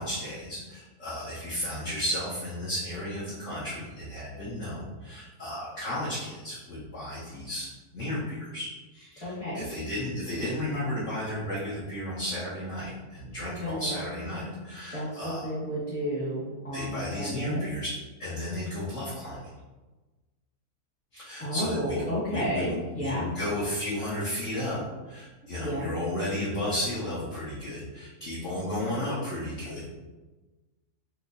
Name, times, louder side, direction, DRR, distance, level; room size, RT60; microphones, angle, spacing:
voice 1, 0.0-7.7 7.9-15.5 16.7-17.9 18.2-19.5 21.1-29.9, left 1 dB, 55° left, -9 dB, 1.1 m, -33 dB
voice 2, 9.2-9.6 13.4-14.0 14.9-17.7 21.4-23.2 25.4-25.8, equal, 25° left, -10 dB, 0.9 m, -32 dB
4.5 x 2.1 x 2.6 m, 1.2 s
omnidirectional pair, 1.7 m